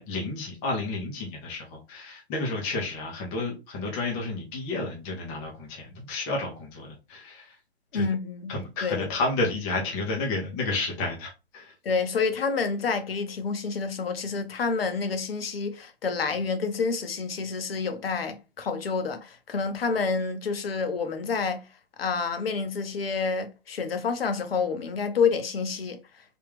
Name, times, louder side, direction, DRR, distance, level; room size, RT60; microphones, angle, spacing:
voice 1, 0.0-7.6 7.9-8.0 8.5-11.7, left 2 dB, 10° left, 0.4 m, -31 dB
voice 2, 7.9-9.1 11.8-21.7 22.0-26.0, left 5 dB, 60° left, 0.8 m, -28 dB
3.4 x 2.3 x 3.3 m
figure-of-eight pair, 130°, 33 cm